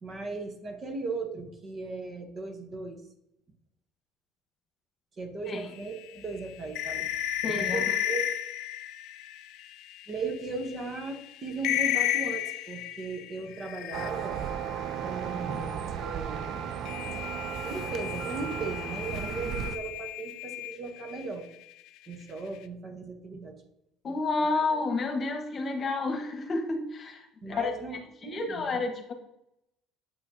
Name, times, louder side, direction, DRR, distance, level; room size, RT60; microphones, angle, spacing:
voice 1, 0.0-3.0 5.2-7.1 7.6-8.3 10.1-14.4 15.0-16.6 17.6-21.5 22.1-23.6 24.7-24.8 27.4-28.6, right 3 dB, 35° right, 5 dB, 1.0 m, -37 dB
sound 1, 5.7-10.1 10.7-10.8 11.1-11.2 11.6-14.5 16.8-21.2, left 13 dB, 70° left, 0.4 m, -33 dB
voice 2, 7.4-7.9 24.0-29.1, left 3 dB, 35° left, 4 dB, 1.3 m, -31 dB
sound 2, 13.9-19.8, right 8 dB, 55° right, 0.4 m, -35 dB
7.8 x 5.6 x 2.8 m, 0.81 s
cardioid pair, 120°, 0 cm